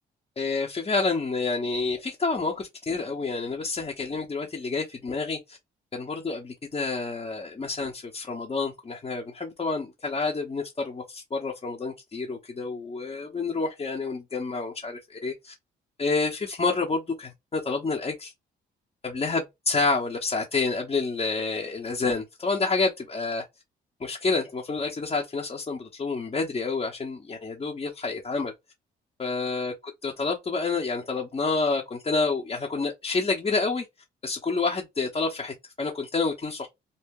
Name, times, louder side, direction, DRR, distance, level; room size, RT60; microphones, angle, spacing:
voice 1, 0.4-5.6 5.9-15.5 16.0-18.3 19.0-23.5 24.0-28.5 29.2-29.7 30.0-33.8 34.2-36.7, left 3 dB, 30° left, 0.8 m, -28 dB
2.7 x 2.1 x 3.6 m
cardioid pair, 90°, 20 cm